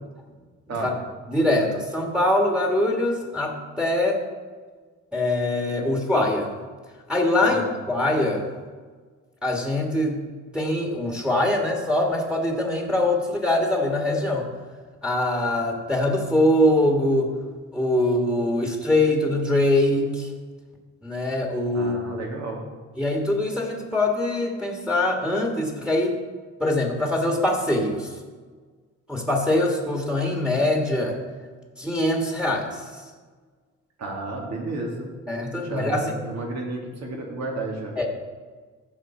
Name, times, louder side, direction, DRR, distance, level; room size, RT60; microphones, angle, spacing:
voice 1, 1.3-4.2 5.1-6.5 7.1-7.6 7.9-8.4 9.4-10.2 10.5-14.5 15.0-17.3 17.7-20.3 21.0-22.0 23.0-26.2 26.6-28.1 29.1-31.2 31.8-32.8 35.3-36.1 37.9-38.1, left 1 dB, 5° right, 1 dB, 1.8 m, -23 dB
voice 2, 21.7-22.6 34.0-35.1 35.6-38.0, right 2 dB, 60° right, 0 dB, 2.5 m, -32 dB
15.0 x 5.2 x 4.4 m, 1.5 s
cardioid pair, 90°, 30 cm